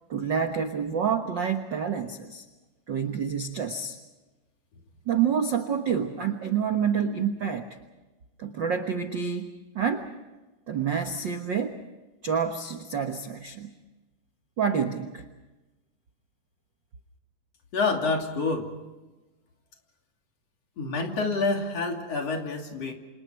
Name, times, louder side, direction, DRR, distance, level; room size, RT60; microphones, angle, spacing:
voice 1, 0.1-2.4 2.9-4.0 5.1-7.7 8.4-10.1 10.7-11.8 12.2-13.7 14.6-15.2, right 7 dB, 55° right, 6 dB, 1.3 m, -28 dB
voice 2, 17.7-18.7 20.8-22.9, left 3 dB, 50° left, 3 dB, 3.7 m, -27 dB
29.0 x 27.0 x 4.5 m, 1.1 s
omnidirectional pair, 3.9 m